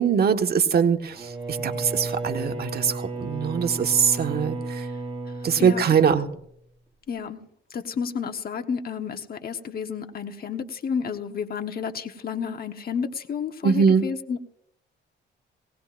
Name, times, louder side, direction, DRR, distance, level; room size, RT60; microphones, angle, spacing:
voice 1, 0.0-4.9 5.4-6.3 13.6-14.1, right 6 dB, 50° right, 5 dB, 1.5 m, -22 dB
Bowed string instrument, 1.1-6.4, right 2 dB, 25° right, 7.4 m, -33 dB
voice 2, 7.1-7.4 7.7-14.4, left 6 dB, 50° left, 6 dB, 1.3 m, -31 dB
19.0 x 18.5 x 2.6 m, 0.72 s
cardioid pair, 90°, 20 cm